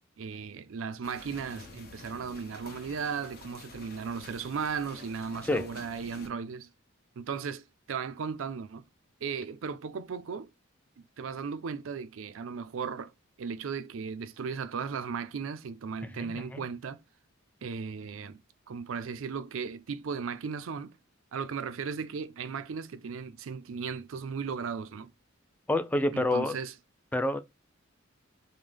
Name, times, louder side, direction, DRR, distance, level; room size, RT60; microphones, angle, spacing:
voice 1, 0.2-6.7 7.2-8.9 9.2-10.5 11.2-13.1 13.4-17.0 17.6-18.4 18.7-20.9 21.3-25.1 26.1-26.7, right 6 dB, 70° right, 0.4 m, -36 dB
sound 1, 1.0-6.3, left 3 dB, 50° left, 0.9 m, -49 dB
voice 2, 16.2-16.6 25.7-26.5 27.1-27.4, left 1 dB, 10° left, 0.3 m, -28 dB
5.3 x 2.1 x 3.3 m
head